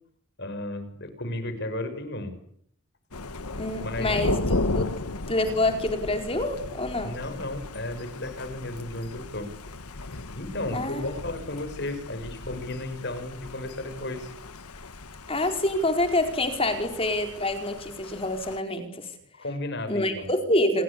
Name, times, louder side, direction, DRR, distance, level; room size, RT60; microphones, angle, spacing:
voice 1, 0.4-2.3 3.8-4.2 7.0-9.5 9.9-10.0 10.3-14.3 19.3-20.3, left 1 dB, 50° left, 10 dB, 5.9 m, -34 dB
Thunder, 3.1-18.6, left 2 dB, 90° left, 1.6 m, -35 dB
voice 2, 3.6-4.3 4.7-4.9 5.3-7.2 10.7-11.2 15.3-19.1 19.9-20.8, left 1 dB, 25° left, 6 dB, 4.6 m, -26 dB
28.0 x 24.0 x 8.5 m, 0.67 s
head